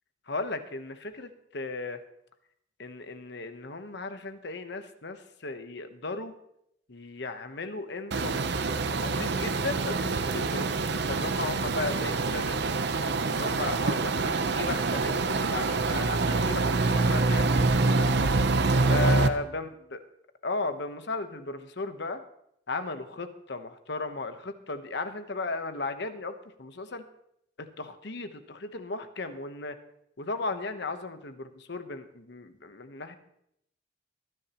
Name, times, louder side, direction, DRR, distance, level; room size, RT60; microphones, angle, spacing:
voice 1, 0.3-2.0 2.8-6.3 6.9-8.6 8.9-12.6 13.3-18.1 18.9-20.0 20.4-22.2 22.7-27.0 27.6-29.8 30.2-33.2, left 3 dB, 60° left, 9 dB, 1.0 m, -36 dB
sound 1, 8.1-19.3, right 3 dB, 60° right, 0.7 m, -26 dB
23.5 x 10.0 x 3.0 m, 0.75 s
head